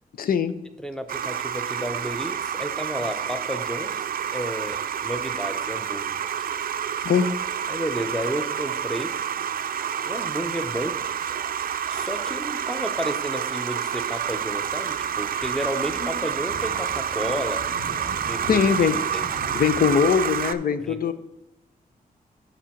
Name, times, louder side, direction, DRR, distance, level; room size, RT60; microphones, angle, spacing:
voice 1, 0.2-0.6 7.0-7.3 18.5-19.0 19.5-21.1, left 7 dB, 70° left, 12 dB, 0.6 m, -21 dB
voice 2, 0.8-4.1 4.3-6.2 7.7-9.1 10.0-11.0 11.9-17.6 18.2-18.7 19.1-19.3 20.8-21.1, equal, 5° left, 8 dB, 0.6 m, -32 dB
sound 1, 1.1-20.5, right 8 dB, 75° right, 0.5 m, -29 dB
sound 2, 14.3-19.9, left 1 dB, 55° left, 2.4 m, -41 dB
7.4 x 5.1 x 5.8 m, 0.90 s
wide cardioid pair, 135°, 15 cm